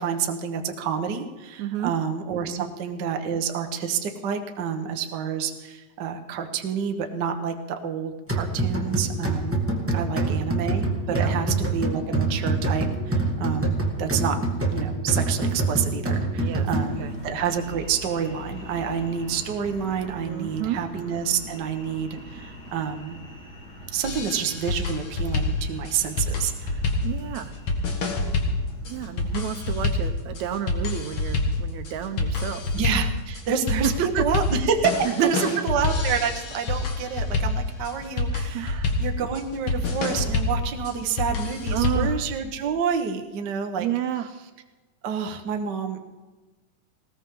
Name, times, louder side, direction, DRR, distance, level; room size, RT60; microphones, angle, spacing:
voice 1, 0.0-9.6 9.9-14.4 14.7-23.2 23.9-26.8 32.7-33.9 34.2-34.9 35.2-43.9 45.0-46.1, right 7 dB, 50° right, 4 dB, 1.3 m, -28 dB
voice 2, 1.6-1.9 2.6-2.7 9.9-10.3 11.1-11.3 16.4-16.7 17.0-17.1 20.3-20.9 27.0-27.5 28.9-32.6 33.8-34.3 35.0-35.5 38.5-39.0 41.7-42.2 43.8-44.3, right 10 dB, 75° right, 8 dB, 2.0 m, -30 dB
sound 1, 8.3-17.2, right 2 dB, 5° right, 1.2 m, -26 dB
sound 2, 16.9-29.8, left 1 dB, 30° left, 3.4 m, -42 dB
sound 3, 24.0-42.2, left 3 dB, 50° left, 2.4 m, -27 dB
19.5 x 18.5 x 3.8 m, 1.2 s
omnidirectional pair, 3.5 m